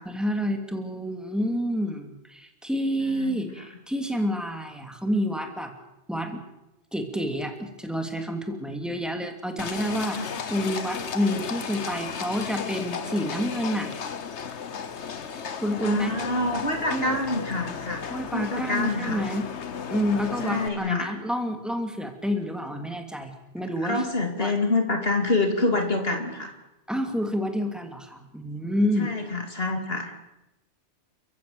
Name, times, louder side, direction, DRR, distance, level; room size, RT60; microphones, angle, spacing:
voice 1, 0.0-5.7 6.1-6.4 6.9-10.2 10.5-13.9 15.5-16.2 16.9-17.2 18.1-19.5 19.9-24.0 24.4-24.5 26.9-29.1, equal, ahead, 4 dB, 2.8 m, -28 dB
voice 2, 3.1-3.6 10.1-10.3 15.8-18.1 18.3-19.2 20.4-21.1 23.8-26.5 29.0-30.1, left 2 dB, 60° left, 4 dB, 2.9 m, -27 dB
Livestock farm animals working animals, 9.6-20.7, left 6 dB, 75° left, 1.4 m, -34 dB
29.5 x 15.0 x 7.9 m, 0.95 s
omnidirectional pair, 1.2 m